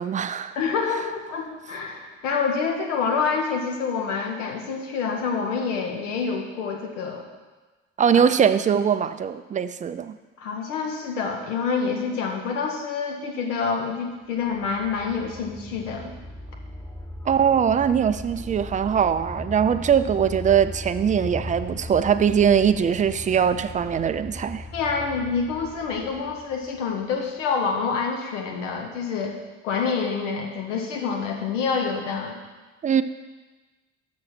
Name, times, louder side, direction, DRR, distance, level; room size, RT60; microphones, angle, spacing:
voice 1, 0.0-0.6 8.0-10.2 17.3-24.6 32.8-33.0, right 8 dB, 20° right, 12 dB, 0.3 m, -21 dB
voice 2, 0.6-7.2 10.4-16.1 24.7-29.4 29.6-32.4, left 5 dB, 75° left, 2 dB, 1.1 m, -27 dB
sound 1, 14.2-27.0, left 1 dB, 5° left, 1.0 m, -38 dB
6.4 x 6.3 x 6.1 m, 1.3 s
figure-of-eight pair, 55°, 37 cm